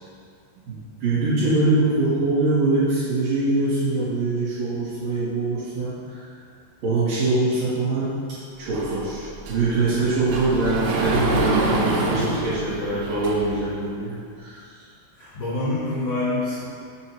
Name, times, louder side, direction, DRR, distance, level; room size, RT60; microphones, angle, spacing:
voice 1, 0.7-6.2 6.8-8.2 8.6-14.6, right 2 dB, 60° right, -12 dB, 2.6 m, -23 dB
Sliding door, 8.7-13.7, right 2 dB, 85° right, 2.2 m, -26 dB
voice 2, 15.2-16.7, left 2 dB, 75° left, -10 dB, 2.0 m, -26 dB
7.3 x 2.9 x 4.5 m, 2.2 s
omnidirectional pair, 5.3 m